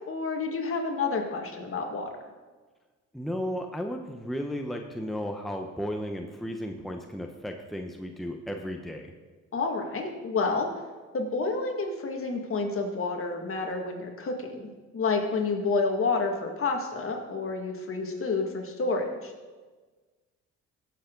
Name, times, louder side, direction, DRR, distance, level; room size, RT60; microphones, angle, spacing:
voice 1, 0.1-2.1 9.5-10.7 11.1-19.3, left 4 dB, 45° left, 3 dB, 2.0 m, -29 dB
voice 2, 3.1-9.1, equal, ahead, 3 dB, 1.0 m, -34 dB
16.5 x 7.1 x 3.9 m, 1.4 s
cardioid pair, 90°, 30 cm